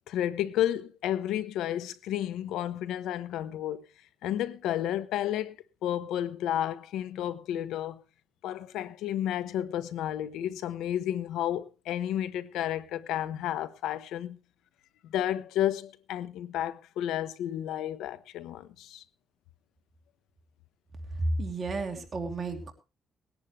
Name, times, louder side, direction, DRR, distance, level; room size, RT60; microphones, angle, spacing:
voice 1, 0.1-3.8 4.2-5.6 5.8-8.0 8.4-14.4 15.0-19.0, left 11 dB, 90° left, 1.0 m, -31 dB
voice 2, 21.1-22.7, right 2 dB, 40° right, 2.8 m, -32 dB
20.0 x 10.5 x 3.2 m
cardioid pair, 90°, 0 cm